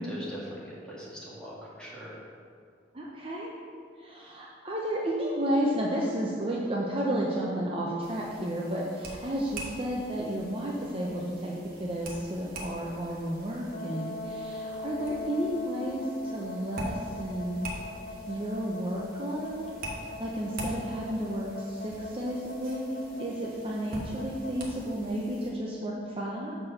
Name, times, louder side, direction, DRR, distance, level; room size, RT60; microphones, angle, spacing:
voice 1, 0.0-2.2, equal, 5° left, -8 dB, 1.7 m, -41 dB
voice 2, 2.9-3.5 4.0-17.7 18.3-19.6 20.0-22.8 23.2-26.6, right 1 dB, 30° right, -3 dB, 0.7 m, -32 dB
sound 1, 8.0-25.5, right 1 dB, 55° right, 1.2 m, -44 dB
sound 2, 13.7-24.5, left 2 dB, 70° left, 0.8 m, -40 dB
5.9 x 4.5 x 6.4 m, 2.2 s
head